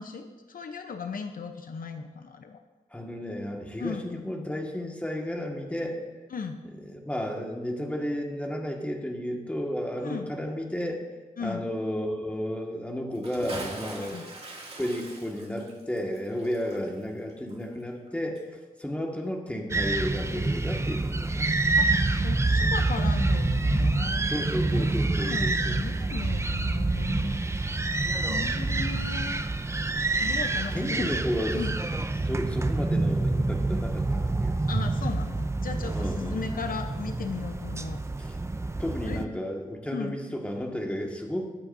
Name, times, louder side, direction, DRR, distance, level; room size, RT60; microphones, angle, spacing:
voice 1, 0.0-2.6 3.8-4.0 6.3-6.6 10.0-10.3 11.4-11.7 14.0-14.3 21.8-24.3 24.7-27.4 28.3-29.4 30.2-31.1 31.5-31.8 34.7-38.0 39.0-39.3 39.9-40.2, left 5 dB, 75° left, 6 dB, 0.8 m, -36 dB
voice 2, 2.9-6.0 6.9-11.0 11.4-14.3 14.8-18.4 18.8-21.5 24.3-25.8 30.7-31.6 31.9-34.5 36.0-36.4 38.2-38.4 38.8-41.4, equal, 10° left, 0 dB, 1.8 m, -32 dB
Bathtub (filling or washing) / Splash splatter, 13.1-18.1 18.4-18.5, right 2 dB, 45° right, 2.5 m, -42 dB
sound 1, 19.7-39.2, right 2 dB, 20° right, 0.5 m, -27 dB
22.0 x 8.7 x 2.7 m, 1.2 s
wide cardioid pair, 95°, 15 cm